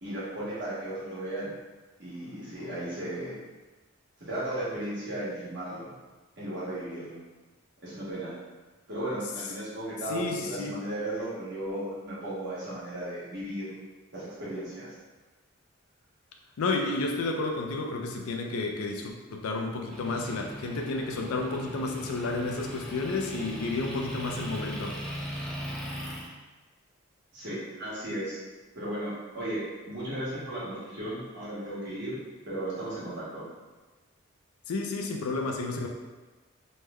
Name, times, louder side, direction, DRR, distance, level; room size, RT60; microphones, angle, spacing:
voice 1, 0.0-1.5 2.0-3.4 4.2-5.9 6.4-7.2 7.8-8.3 8.9-13.7 14.1-14.9 27.3-28.4 28.7-32.2 32.4-33.4, right 1 dB, 55° right, -9 dB, 1.3 m, -35 dB
voice 2, 10.1-10.8 16.6-25.1 34.7-35.9, left 3 dB, 85° left, 2 dB, 0.4 m, -31 dB
Motor vehicle (road) / Engine, 19.9-26.3, equal, 5° left, 0.3 m, -39 dB
3.1 x 2.1 x 3.5 m, 1.3 s
head